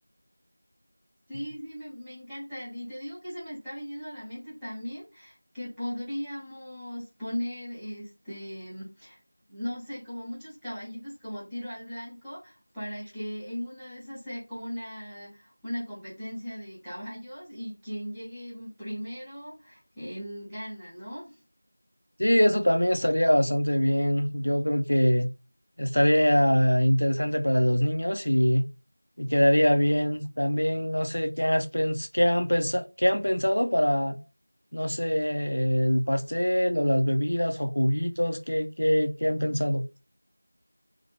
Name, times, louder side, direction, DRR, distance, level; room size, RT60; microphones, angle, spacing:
voice 1, 1.3-9.2 9.5-21.4, equal, ahead, 0.6 m, -38 dB
voice 2, 22.2-25.3 25.8-28.6 29.2-34.2 34.7-39.9, equal, 60° left, 0.4 m, -24 dB
3.1 x 2.1 x 2.9 m
figure-of-eight pair, 175°, 0 cm